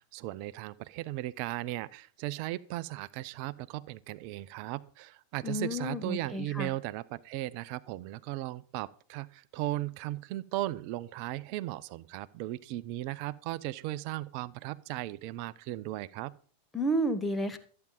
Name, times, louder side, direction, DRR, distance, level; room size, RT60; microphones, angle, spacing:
voice 1, 0.0-16.3, right 16 dB, 45° right, 19 dB, 0.6 m, -37 dB
voice 2, 5.4-6.7 16.7-17.6, right 1 dB, 10° left, 6 dB, 1.7 m, -31 dB
14.0 x 8.8 x 5.4 m, 0.43 s
figure-of-eight pair, 90°, 0 cm